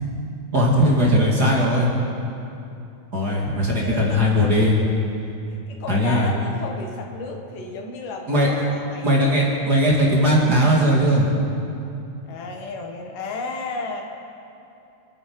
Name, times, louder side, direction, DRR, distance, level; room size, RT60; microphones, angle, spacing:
voice 1, 0.5-1.9 3.1-4.8 5.9-6.3 8.3-8.5 9.0-11.3, equal, 35° right, -4 dB, 2.2 m, -18 dB
voice 2, 3.7-4.9 5.7-9.2 12.2-14.0, left 3 dB, 85° left, 2 dB, 3.1 m, -33 dB
28.5 x 9.7 x 4.7 m, 2.7 s
omnidirectional pair, 3.7 m